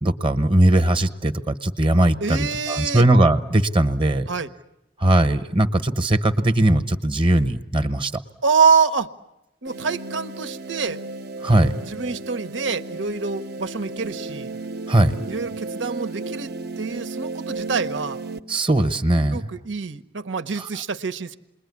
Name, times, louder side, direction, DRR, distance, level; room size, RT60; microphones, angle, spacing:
voice 1, 0.0-4.2 5.0-8.1 11.4-11.7 14.9-15.1 18.5-19.4, right 1 dB, 30° right, 11 dB, 1.1 m, -19 dB
voice 2, 2.2-3.1 4.3-4.5 8.4-9.1 9.6-11.0 11.8-14.5 15.3-18.2 19.3-21.4, right 5 dB, 80° right, 10 dB, 1.0 m, -25 dB
sound 1, 9.7-18.4, right 3 dB, 55° right, 1.0 m, -34 dB
28.5 x 21.5 x 9.6 m, 0.90 s
head